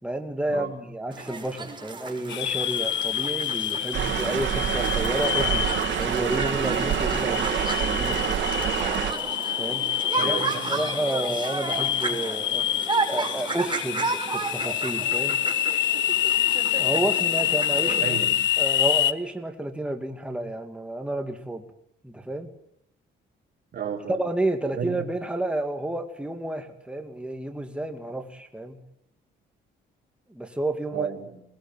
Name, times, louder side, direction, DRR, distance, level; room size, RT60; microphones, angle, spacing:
voice 1, 0.0-8.4 9.6-9.9 10.2-10.4 10.7-12.7 13.1-15.4 16.8-18.2 18.6-21.6 22.0-22.5 24.1-28.8 30.3-31.1, right 1 dB, 5° right, 5 dB, 2.7 m, -30 dB
sound 1, 1.1-18.1, right 3 dB, 25° right, 5.9 m, -33 dB
sound 2, 2.3-19.1, left 12 dB, 70° left, 1.0 m, -27 dB
sound 3, 3.9-9.1, right 10 dB, 70° right, 2.7 m, -27 dB
voice 2, 10.1-10.8 17.8-18.5 23.7-24.2 24.7-25.1 30.9-31.4, right 7 dB, 50° right, -1 dB, 4.2 m, -33 dB
22.5 x 20.0 x 9.2 m, 0.76 s
cardioid pair, 90°, 20 cm